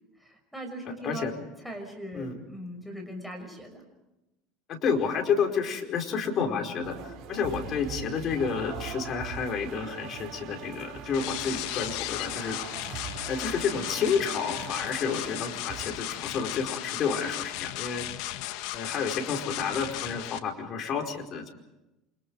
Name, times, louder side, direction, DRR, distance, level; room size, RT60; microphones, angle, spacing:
voice 1, 0.2-1.4 1.6-3.8, equal, ahead, 4 dB, 6.0 m, -40 dB
voice 2, 4.7-12.6 12.9-18.0 18.7-21.5, left 6 dB, 40° left, 3 dB, 4.8 m, -30 dB
sound 1, 6.8-15.8, right 7 dB, 60° right, 4.8 m, -42 dB
sound 2, 11.1-20.4, left 14 dB, 75° left, 1.7 m, -36 dB
28.5 x 25.5 x 4.8 m, 0.95 s
cardioid pair, 135°, 0 cm